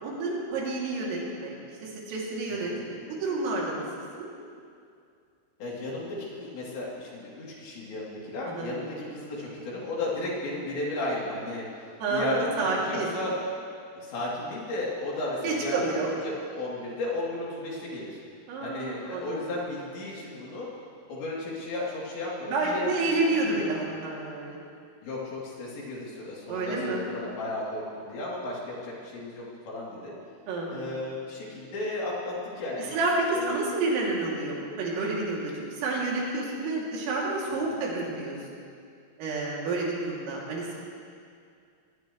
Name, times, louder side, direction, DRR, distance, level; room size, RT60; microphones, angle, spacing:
voice 1, 0.0-1.5 1.8-3.8 4.2-4.3 8.5-8.8 12.0-13.1 15.4-16.1 18.5-19.4 22.5-24.6 26.5-27.0 30.5-30.8 32.9-38.4 39.2-40.8, right 2 dB, 75° right, -4 dB, 5.3 m, -29 dB
voice 2, 2.5-2.8 5.6-13.4 14.0-18.2 18.6-20.7 21.1-22.9 23.2-23.7 25.0-30.1 30.7-33.0 33.3-33.6 37.6-37.8, left 2 dB, 60° left, -6 dB, 5.2 m, -34 dB
23.0 x 19.5 x 3.2 m, 2.3 s
omnidirectional pair, 5.9 m